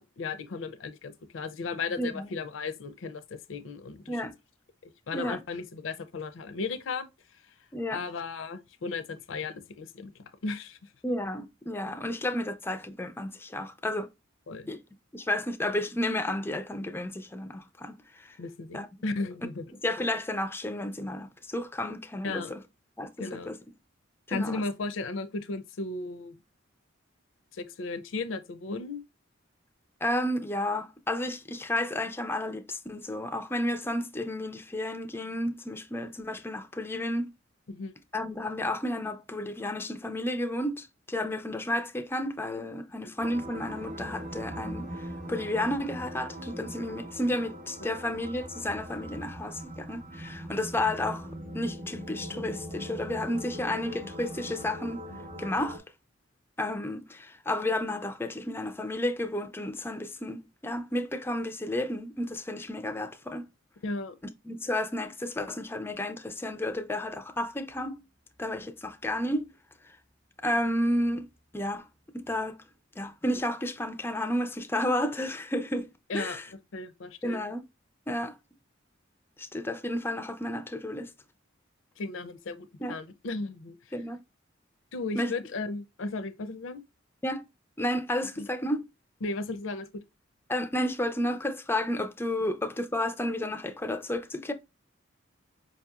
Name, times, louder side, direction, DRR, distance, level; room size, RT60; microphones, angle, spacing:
voice 1, 0.0-4.2 4.8-7.1 7.9-10.1 10.4-10.8 14.5-14.7 18.4-19.6 22.2-22.5 23.2-23.5 24.3-26.4 27.5-29.0 37.7-37.9 43.0-43.1 63.8-64.2 76.1-76.4 76.7-77.4 82.0-83.8 84.9-86.8 88.4-88.5 89.2-89.9, left 3 dB, 75° left, 0.5 m, -35 dB
voice 2, 2.0-2.3 4.1-4.3 5.1-5.4 7.7-8.0 11.0-14.1 14.7-14.8 15.1-18.4 18.7-18.9 19.7-22.6 23.0-23.6 24.3-24.6 30.0-37.3 38.1-51.3 51.5-55.0 55.4-55.8 56.6-63.5 64.4-68.0 68.4-69.5 70.4-71.3 71.5-71.9 72.1-72.6 73.0-76.5 77.2-77.6 78.1-78.4 79.4-81.1 82.8-83.0 83.9-84.2 85.1-85.3 87.2-87.4 87.8-88.8 90.5-94.5, left 1 dB, 10° left, 0.4 m, -32 dB
sound 1, 43.2-55.8, equal, 45° right, 0.7 m, -41 dB
5.0 x 2.8 x 2.3 m
head